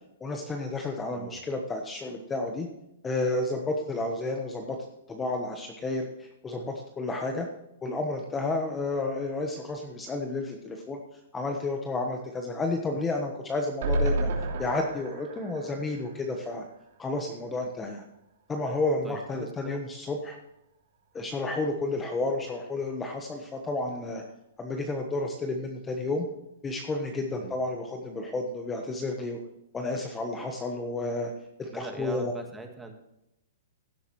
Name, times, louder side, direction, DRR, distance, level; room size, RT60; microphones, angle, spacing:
voice 1, 0.2-2.7 3.0-4.8 5.1-7.5 7.8-11.0 11.3-14.3 14.6-16.6 17.0-18.0 18.5-20.4 21.1-24.2 24.6-26.3 26.6-29.4 29.7-31.3 31.6-32.3, left 2 dB, 15° left, 3 dB, 1.2 m, -31 dB
sound 1, 13.8-17.1 17.4-17.5 17.7-17.8, right 1 dB, 60° right, 3.1 m, -31 dB
voice 2, 19.0-19.8 27.4-27.6 31.7-32.9, right 2 dB, 5° right, 4 dB, 1.7 m, -41 dB
16.0 x 7.8 x 3.2 m, 0.85 s
hypercardioid pair, 150°, 0 cm